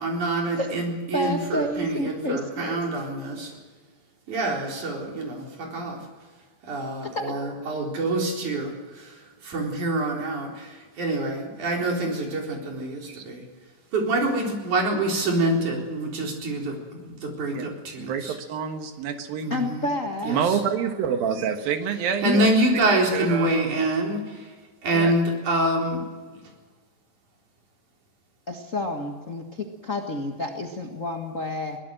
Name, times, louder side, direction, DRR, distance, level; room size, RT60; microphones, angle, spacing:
voice 1, 0.0-3.5 4.3-6.0 6.7-9.1 9.4-13.4 13.9-16.8 17.0-18.3 19.4-19.8 20.3-20.4 22.2-24.2 24.8-26.0, right 2 dB, 60° right, 0 dB, 5.4 m, -26 dB
voice 2, 1.1-2.8 7.0-7.3 19.5-20.5 22.2-22.4 28.5-31.8, left 2 dB, 40° left, 2 dB, 1.2 m, -30 dB
voice 3, 18.0-19.5 20.3-22.5 23.1-23.5 24.9-25.1, right 7 dB, 90° right, 7 dB, 3.2 m, -27 dB
23.0 x 18.5 x 7.8 m, 1.4 s
omnidirectional pair, 4.0 m